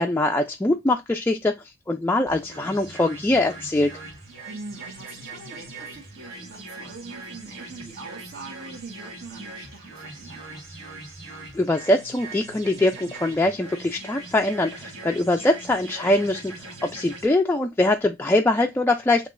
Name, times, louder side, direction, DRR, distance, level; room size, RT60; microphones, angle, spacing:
voice 1, 0.0-3.9 11.5-19.3, left 2 dB, 10° left, 0.3 m, -23 dB
sound 1, 2.3-17.3, right 3 dB, 70° right, 1.8 m, -41 dB
voice 2, 4.4-10.6, right 3 dB, 55° right, 1.3 m, -42 dB
7.2 x 3.0 x 2.5 m
head